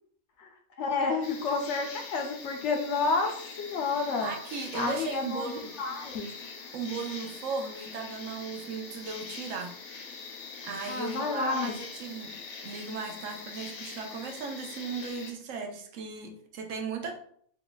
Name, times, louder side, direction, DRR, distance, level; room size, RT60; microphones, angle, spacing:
voice 1, 0.8-4.3 4.7-6.3 10.9-11.7, left 4 dB, 65° left, 2 dB, 0.8 m, -30 dB
sound 1, 1.2-15.3, left 4 dB, 85° left, 1.1 m, -43 dB
voice 2, 4.2-5.7 6.7-9.7 10.6-12.3 12.6-17.2, right 5 dB, 75° right, 3 dB, 1.0 m, -36 dB
2.9 x 2.3 x 3.8 m, 0.63 s
omnidirectional pair, 1.4 m